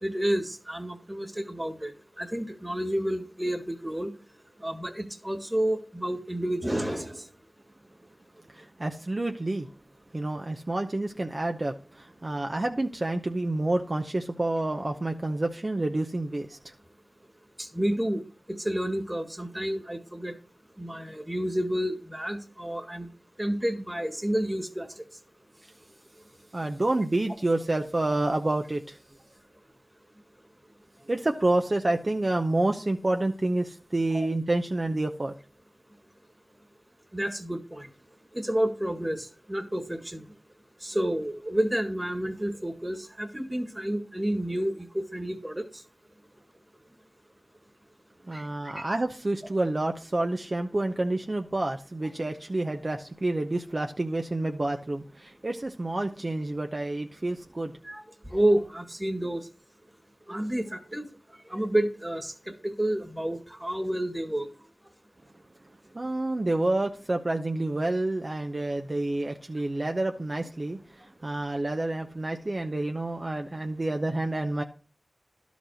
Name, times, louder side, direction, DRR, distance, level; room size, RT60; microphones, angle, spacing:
voice 1, 0.0-4.1 4.6-7.2 17.6-18.2 18.5-20.3 20.8-23.1 23.4-24.9 34.1-34.3 37.1-37.9 38.3-40.2 40.8-45.6 48.3-48.4 57.8-58.0 58.3-59.4 60.3-61.1 61.5-62.3 62.6-64.5, right 1 dB, 15° right, 8 dB, 1.7 m, -30 dB
voice 2, 8.5-9.7 10.1-16.7 26.5-29.0 31.1-35.3 48.3-57.7 65.9-74.6, right 2 dB, 45° right, 4 dB, 0.8 m, -28 dB
11.5 x 5.2 x 6.4 m, 0.38 s
wide cardioid pair, 45°, 0 cm